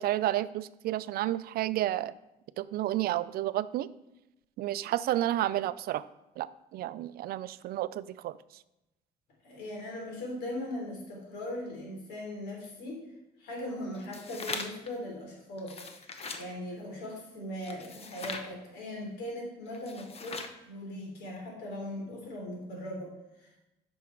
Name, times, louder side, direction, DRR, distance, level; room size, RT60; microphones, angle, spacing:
voice 1, 0.0-2.1 2.6-3.9 4.6-6.1 6.4-8.4, right 14 dB, 65° right, 16 dB, 0.4 m, -31 dB
voice 2, 9.4-13.0 13.4-15.8 16.1-23.7, left 1 dB, 85° left, -1 dB, 3.5 m, -39 dB
sound 1, 13.9-14.9 15.6-16.5 17.6-18.5 19.7-20.6, left 4 dB, 35° left, 1.0 m, -40 dB
9.5 x 6.2 x 4.6 m, 0.92 s
cardioid pair, 110°, 17 cm